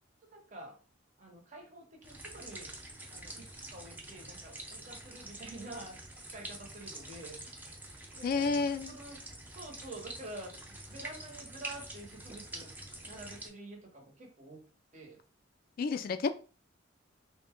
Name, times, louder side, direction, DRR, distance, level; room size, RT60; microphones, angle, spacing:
voice 1, 0.3-0.8 1.2-2.7 3.1-6.0 6.3-7.4 8.1-9.2 9.5-10.5 10.9-12.7 13.0-14.7 14.9-15.2, right 2 dB, 40° right, 1 dB, 0.9 m, -48 dB
sound 1, 2.0-13.5, right 1 dB, 10° right, 0.6 m, -46 dB
voice 2, 8.2-8.9 15.8-16.3, left 4 dB, 50° left, 11 dB, 0.3 m, -30 dB
3.7 x 2.2 x 3.5 m, 0.37 s
head